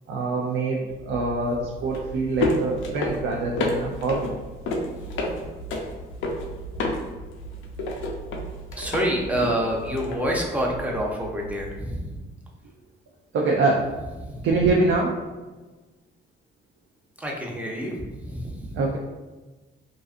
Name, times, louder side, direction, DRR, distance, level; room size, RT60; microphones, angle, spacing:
voice 1, 0.1-4.3 13.3-14.0 14.4-15.2 18.7-19.0, right 3 dB, 70° right, -1 dB, 0.4 m, -24 dB
sound 1, 0.9-11.8, left 1 dB, 80° left, 0.4 m, -31 dB
voice 2, 8.8-12.1 17.2-17.9 18.3-18.7, equal, 5° right, -1 dB, 0.5 m, -27 dB
2.5 x 2.4 x 2.4 m, 1.2 s
cardioid pair, 90°, 20 cm